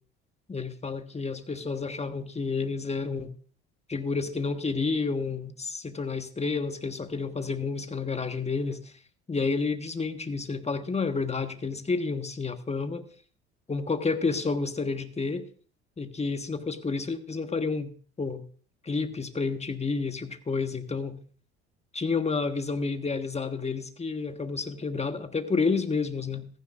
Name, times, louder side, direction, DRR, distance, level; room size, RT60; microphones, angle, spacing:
voice 1, 0.5-3.3 3.9-8.9 9.3-13.1 13.7-15.5 16.0-17.9 18.2-18.4 18.8-21.2 21.9-26.5, left 4 dB, 20° left, 8 dB, 1.5 m, -30 dB
16.0 x 14.5 x 2.5 m, 0.43 s
hypercardioid pair, 65°, 32 cm